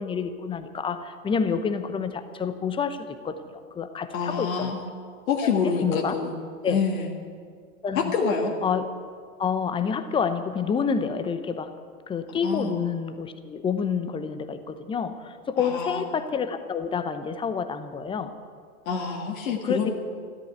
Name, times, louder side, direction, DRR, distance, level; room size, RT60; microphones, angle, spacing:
voice 1, 0.0-3.4 3.7-4.7 5.4-6.1 6.6-6.8 7.8-8.1 8.6-8.9 9.4-11.7 12.1-18.3 19.6-19.9, left 6 dB, 10° left, 10 dB, 0.8 m, -28 dB
voice 2, 4.1-4.9 5.3-6.4 6.7-7.1 7.9-8.5 12.4-12.7 15.6-16.1 18.9-19.9, left 5 dB, 65° left, 0 dB, 2.2 m, -26 dB
14.0 x 13.0 x 8.1 m, 2.1 s
hypercardioid pair, 120°, 44 cm